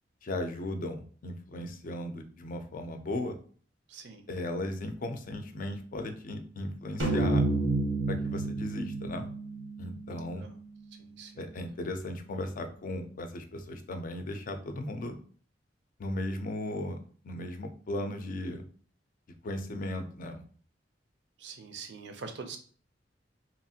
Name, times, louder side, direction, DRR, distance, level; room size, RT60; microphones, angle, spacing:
voice 1, 0.2-3.4 4.3-7.5 8.1-9.3 9.8-10.5 11.4-15.2 16.0-17.0 17.2-18.6 19.4-20.4, left 1 dB, 45° left, 6 dB, 0.4 m, -36 dB
voice 2, 3.9-4.3 10.4-10.5 11.2-11.5 21.4-22.6, right 5 dB, 70° right, 6 dB, 0.5 m, -44 dB
sound 1, 7.0-10.5, right 2 dB, 90° right, 0.9 m, -30 dB
2.9 x 2.4 x 2.7 m, 0.43 s
head